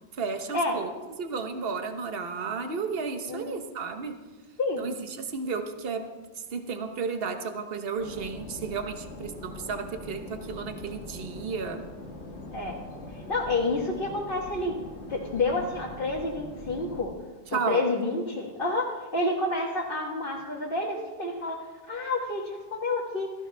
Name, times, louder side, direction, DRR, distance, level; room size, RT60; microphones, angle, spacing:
voice 1, 0.1-0.9 1.2-4.2 4.8-11.8 17.5-17.9, right 5 dB, 50° right, 6 dB, 1.3 m, -33 dB
voice 2, 4.6-4.9 12.5-12.8 13.1-14.8 15.1-17.1 17.5-23.3, left 2 dB, 45° left, -4 dB, 1.8 m, -29 dB
sound 1, 8.0-17.0, left 2 dB, 60° left, 1.8 m, -42 dB
16.0 x 15.0 x 3.4 m, 1.3 s
omnidirectional pair, 1.3 m